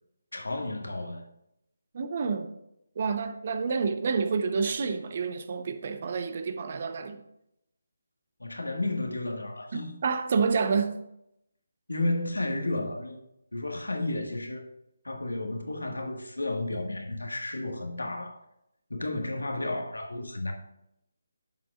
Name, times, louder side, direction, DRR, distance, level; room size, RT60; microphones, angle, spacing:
voice 1, 0.3-1.2 8.4-10.0 11.9-13.2 13.5-14.7 15.0-18.4 18.9-20.5, left 2 dB, 85° left, 1.7 m, -32 dB
voice 2, 1.9-2.5 3.0-7.2 10.0-11.0, right 5 dB, 45° right, 0.8 m, -28 dB
11.0 x 7.5 x 2.5 m
figure-of-eight pair, 155°, 0 cm